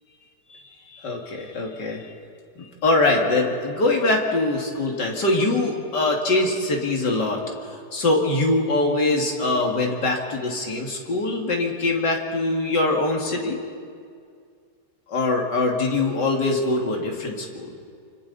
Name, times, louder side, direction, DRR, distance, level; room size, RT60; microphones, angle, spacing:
voice 1, 0.5-2.1 2.6-13.6 15.1-17.7, left 2 dB, 85° left, 0 dB, 3.0 m, -23 dB
28.5 x 25.5 x 4.2 m, 2.2 s
omnidirectional pair, 1.8 m